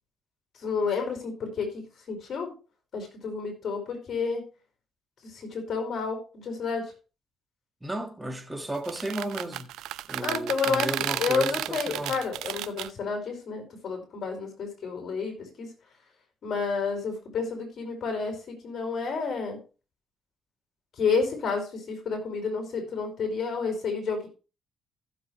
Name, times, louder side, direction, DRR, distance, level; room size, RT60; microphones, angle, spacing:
voice 1, 0.6-2.5 2.9-4.4 5.2-6.9 10.2-15.7 16.4-19.6 21.0-24.3, left 5 dB, 60° left, 5.2 m, -30 dB
voice 2, 7.8-9.8 10.1-12.2, right 1 dB, 10° right, 1.9 m, -34 dB
sound 1, 8.7-12.9, right 14 dB, 90° right, 0.4 m, -32 dB
15.5 x 7.3 x 3.2 m
cardioid pair, 90°, 0 cm